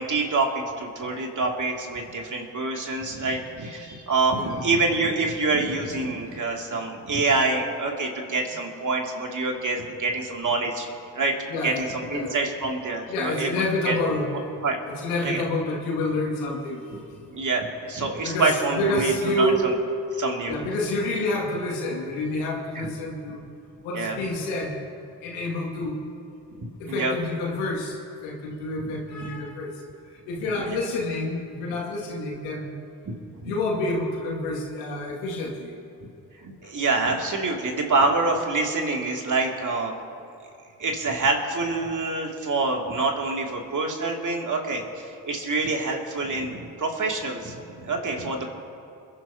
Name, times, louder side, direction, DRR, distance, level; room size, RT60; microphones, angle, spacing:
voice 1, 0.0-10.9 11.1-11.3 11.6-13.9 14.6-14.8 15.2-15.4 17.3-19.7 20.2-20.6 22.7-22.9 23.9-24.2 26.6-27.1 28.9-29.0 29.2-29.3 30.6-30.8 33.4-33.5 36.4-39.9 40.8-48.5, right 3 dB, 40° right, 1 dB, 2.7 m, -26 dB
voice 2, 11.5-12.4 13.0-14.6 14.9-16.8 18.2-19.7 20.5-23.4 23.8-24.7 25.2-26.0 26.8-28.0 28.2-29.8 30.3-32.8 33.4-35.7, left 1 dB, 80° left, -2 dB, 2.4 m, -28 dB
28.5 x 11.5 x 2.9 m, 2.8 s
hypercardioid pair, 40°, 44 cm